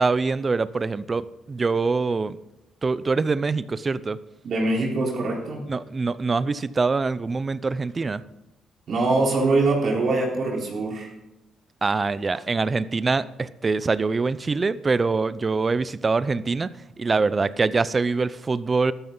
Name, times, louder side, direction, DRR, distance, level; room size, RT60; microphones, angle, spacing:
voice 1, 0.0-2.4 2.8-4.2 5.7-8.2 11.8-18.9, right 4 dB, 30° right, 17 dB, 0.6 m, -24 dB
voice 2, 4.4-5.7 8.9-11.1, right 2 dB, 60° right, -2 dB, 3.9 m, -23 dB
13.5 x 12.5 x 3.9 m, 0.95 s
cardioid pair, 90°, 0 cm